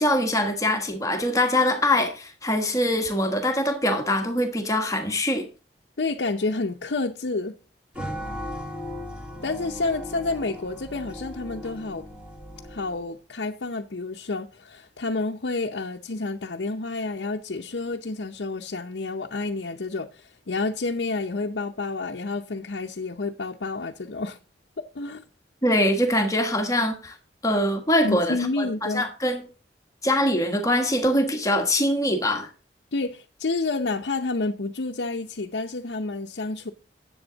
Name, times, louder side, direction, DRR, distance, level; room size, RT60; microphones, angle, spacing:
voice 1, 0.0-5.5 25.6-27.1 27.4-29.4 30.0-32.5, left 1 dB, 20° left, 1.4 m, -23 dB
voice 2, 6.0-7.6 9.4-12.0 12.7-24.4 24.9-25.2 28.0-29.1 32.9-36.7, left 3 dB, 90° left, 0.7 m, -29 dB
sound 1, 7.9-13.1, left 1 dB, 5° right, 2.4 m, -37 dB
10.5 x 7.9 x 3.9 m
head